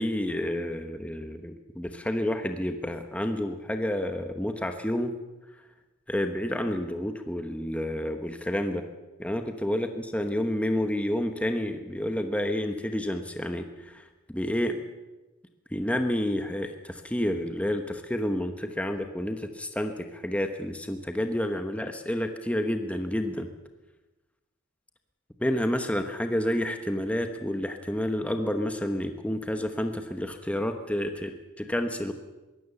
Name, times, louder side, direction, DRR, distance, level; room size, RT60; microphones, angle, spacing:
voice 1, 0.0-5.1 6.1-8.9 9.2-14.8 15.7-23.5 25.4-32.1, left 1 dB, 5° left, 6 dB, 1.0 m, -29 dB
22.5 x 16.5 x 7.0 m, 1.1 s
head